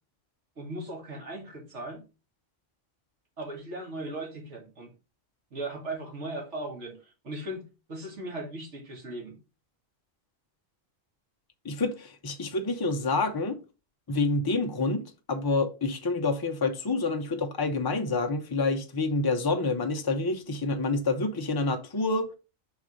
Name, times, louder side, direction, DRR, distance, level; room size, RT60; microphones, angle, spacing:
voice 1, 0.6-2.0 3.4-4.9 5.5-7.0 7.2-9.4, right 1 dB, 75° right, 2.2 m, -38 dB
voice 2, 11.6-13.6 14.1-22.3, left 3 dB, 35° left, 0.3 m, -28 dB
5.2 x 3.8 x 4.9 m
omnidirectional pair, 1.2 m